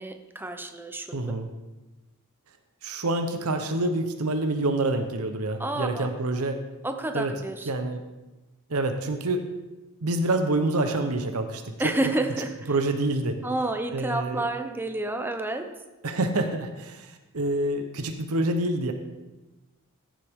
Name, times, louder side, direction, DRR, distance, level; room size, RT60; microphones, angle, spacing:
voice 1, 0.0-1.2 5.6-6.1 6.8-7.7 11.8-12.7 13.4-15.6, right 2 dB, 10° right, 6 dB, 0.7 m, -29 dB
voice 2, 1.1-1.5 2.8-6.6 7.1-7.3 7.7-8.0 8.7-9.4 10.0-11.6 12.7-13.4 13.9-14.5 16.0-18.9, right 2 dB, 80° right, 6 dB, 0.9 m, -27 dB
14.5 x 7.5 x 3.6 m, 1.1 s
head